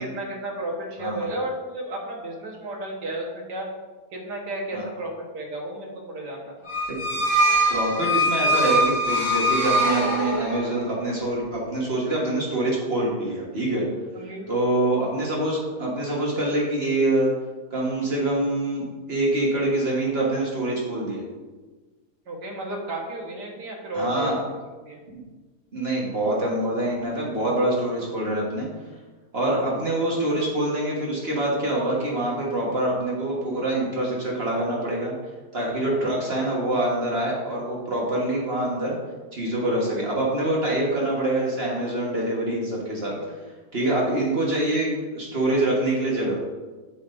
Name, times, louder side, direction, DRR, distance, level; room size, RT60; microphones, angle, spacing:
voice 1, 0.0-3.7 4.1-6.7 14.1-14.5 22.3-24.4 24.9-25.0 29.5-29.7 43.1-43.3, right 1 dB, 85° right, 0 dB, 1.8 m, -33 dB
sound 1, 6.6-10.8, right 1 dB, 40° left, 2.3 m, -22 dB
voice 2, 7.7-13.8 14.5-17.3 17.7-21.2 23.9-24.4 25.1-25.2 25.7-28.7 29.3-35.1 35.5-39.0 39.3-43.2 43.7-46.4, right 1 dB, 40° right, -3 dB, 1.4 m, -25 dB
8.0 x 6.1 x 2.5 m, 1.3 s
omnidirectional pair, 1.8 m